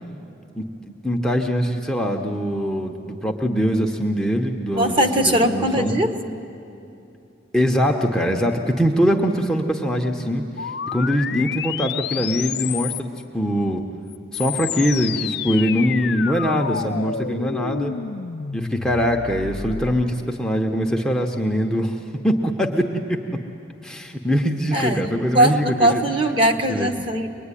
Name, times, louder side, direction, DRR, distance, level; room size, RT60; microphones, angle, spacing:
voice 1, 1.0-6.0 7.5-13.1 13.3-13.8 14.3-17.9 18.5-22.0 22.2-23.4 23.8-26.0 26.7-26.9, equal, 5° left, 1 dB, 1.0 m, -22 dB
voice 2, 4.7-6.3 24.7-27.3, right 1 dB, 25° right, 5 dB, 1.2 m, -20 dB
sound 1, 10.6-13.2 14.1-20.0, left 8 dB, 55° left, 0.5 m, -30 dB
24.0 x 21.0 x 9.9 m, 2.7 s
head